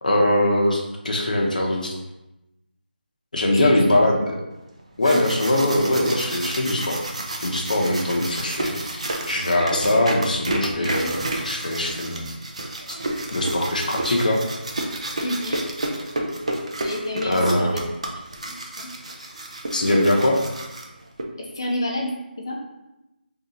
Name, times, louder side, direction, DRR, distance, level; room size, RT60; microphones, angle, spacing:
voice 1, 0.0-2.0 3.3-4.4 5.0-7.0 7.4-12.2 13.3-14.4 17.2-17.8 19.7-20.4, left 1 dB, 50° left, 0 dB, 0.8 m, -21 dB
sound 1, 4.8-21.2, right 1 dB, 35° right, 0.4 m, -31 dB
voice 2, 15.2-15.6 16.8-17.8 18.4-18.9 21.4-22.1 22.4-22.5, left 1 dB, 25° left, -1 dB, 0.5 m, -29 dB
2.9 x 2.8 x 3.8 m, 0.94 s
figure-of-eight pair, 175°, 6 cm